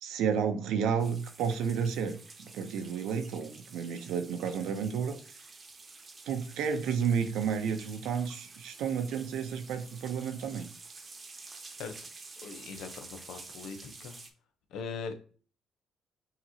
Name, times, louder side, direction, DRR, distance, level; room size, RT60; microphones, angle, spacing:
voice 1, 0.0-5.4 6.3-10.7, right 7 dB, 80° right, 7 dB, 0.6 m, -31 dB
sound 1, 1.0-14.3, right 3 dB, 35° right, 0.9 m, -50 dB
voice 2, 12.4-14.2 14.7-15.2, left 5 dB, 75° left, 7 dB, 0.7 m, -40 dB
5.8 x 2.9 x 2.8 m, 0.40 s
supercardioid pair, 65°, 0 cm